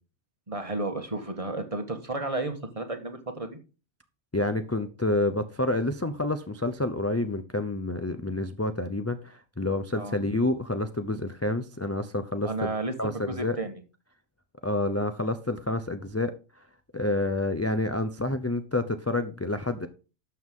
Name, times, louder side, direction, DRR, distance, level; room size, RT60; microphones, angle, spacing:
voice 1, 0.5-3.6 9.9-10.2 12.4-12.9 13.3-13.7, right 2 dB, 25° right, 1.5 m, -32 dB
voice 2, 4.3-12.7 13.0-13.6 14.6-16.3 16.9-19.9, left 2 dB, 20° left, 0.4 m, -28 dB
12.5 x 7.1 x 3.7 m
omnidirectional pair, 1.4 m